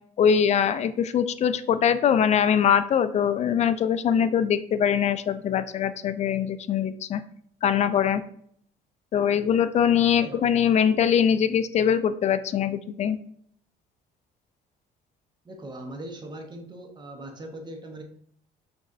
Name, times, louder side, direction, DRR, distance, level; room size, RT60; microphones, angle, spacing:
voice 1, 0.2-7.2 7.6-8.2 9.1-13.2, left 8 dB, 40° left, 13 dB, 0.4 m, -22 dB
voice 2, 15.4-18.0, right 1 dB, 25° right, 3 dB, 1.0 m, -40 dB
6.1 x 3.1 x 2.6 m, 0.64 s
cardioid pair, 110°, 17 cm